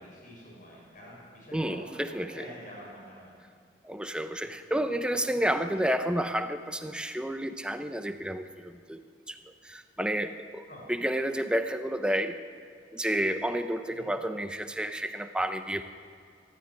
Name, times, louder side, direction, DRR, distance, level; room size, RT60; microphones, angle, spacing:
voice 1, 0.0-2.0 2.3-3.3 4.4-4.5 10.7-10.9 13.9-14.1, equal, 45° left, -4 dB, 7.1 m, -47 dB
voice 2, 1.5-2.5 3.8-9.4 9.6-12.4 12.9-15.8, right 1 dB, 5° right, 8 dB, 0.8 m, -30 dB
23.0 x 13.0 x 9.8 m, 2.1 s
head